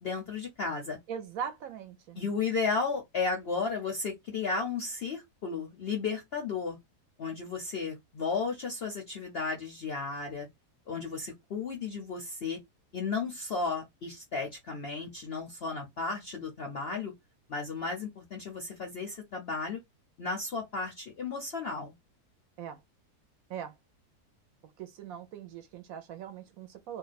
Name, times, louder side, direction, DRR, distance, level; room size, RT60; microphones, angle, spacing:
voice 1, 0.0-1.0 2.2-6.8 7.2-10.5 10.9-12.6 12.9-17.1 17.5-19.8 20.2-21.9, left 4 dB, 60° left, 0.6 m, -34 dB
voice 2, 1.1-2.2 22.6-22.8 23.5-23.7 24.8-27.0, right 8 dB, 70° right, 0.9 m, -40 dB
2.7 x 2.2 x 3.9 m
omnidirectional pair, 1.7 m